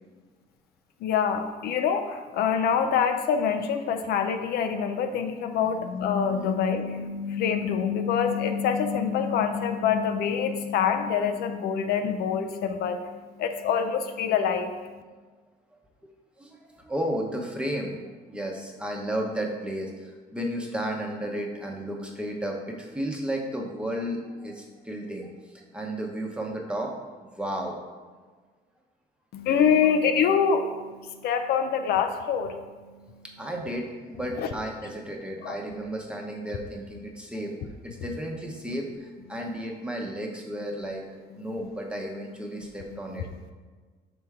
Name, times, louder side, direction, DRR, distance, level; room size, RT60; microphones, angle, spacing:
voice 1, 1.0-15.0 29.3-32.6 34.4-34.5 35.4-35.6 43.1-43.2, left 7 dB, 70° left, 7 dB, 0.5 m, -25 dB
voice 2, 16.4-18.0 18.3-26.9 27.2-27.8 29.8-29.9 33.4-37.5 37.8-41.0 41.4-43.2, right 1 dB, 5° right, 0 dB, 0.9 m, -33 dB
6.0 x 4.4 x 3.5 m, 1.4 s
cardioid pair, 110°, 17 cm